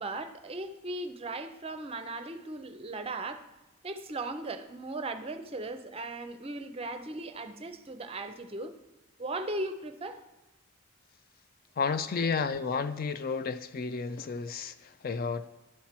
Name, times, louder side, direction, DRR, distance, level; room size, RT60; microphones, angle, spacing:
voice 1, 0.0-3.4 3.8-8.7 9.2-10.2 12.3-12.4, right 2 dB, 30° right, 0.5 m, -37 dB
voice 2, 11.8-15.5, left 5 dB, 45° left, 0.4 m, -32 dB
11.5 x 4.3 x 5.9 m
head